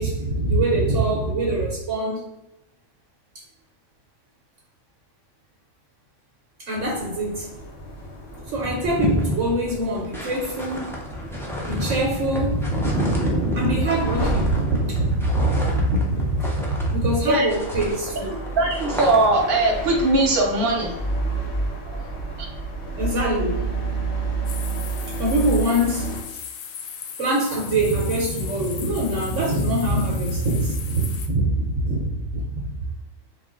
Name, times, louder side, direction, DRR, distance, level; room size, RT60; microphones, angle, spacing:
voice 1, 0.0-2.3 6.7-7.5 8.5-11.0 11.7-18.4 21.9-22.1 22.9-23.7 25.2-26.3 27.2-32.9, right 1 dB, 65° right, -2 dB, 1.0 m, -24 dB
sound 1, 6.7-26.2, right 3 dB, 55° left, 1.2 m, -31 dB
sound 2, 8.0-8.1 8.3-17.2 17.5-19.5, equal, 5° left, 0.3 m, -29 dB
voice 2, 18.6-20.9, right 2 dB, 45° right, -1 dB, 1.0 m, -20 dB
sound 3, 24.4-31.3, left 7 dB, 70° left, 0.9 m, -38 dB
3.6 x 2.4 x 3.6 m, 0.90 s
omnidirectional pair, 1.4 m